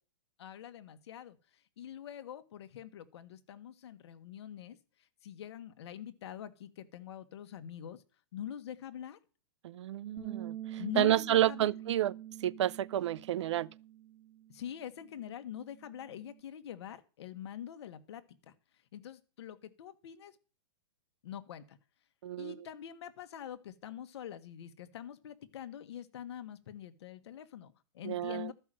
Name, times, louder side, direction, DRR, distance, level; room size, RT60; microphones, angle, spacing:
voice 1, 0.4-1.4 1.8-4.8 5.2-8.0 8.3-9.2 10.8-11.8 14.5-18.5 18.9-20.4 21.2-21.8 22.4-28.5, left 10 dB, 60° left, 1.4 m, -44 dB
voice 2, 9.6-12.1 12.4-13.7 22.2-22.5 28.0-28.5, right 12 dB, 65° right, 0.5 m, -30 dB
Bass guitar, 10.2-16.4, right 12 dB, 25° right, 1.7 m, -46 dB
13.0 x 5.6 x 7.6 m
hypercardioid pair, 160°, 16 cm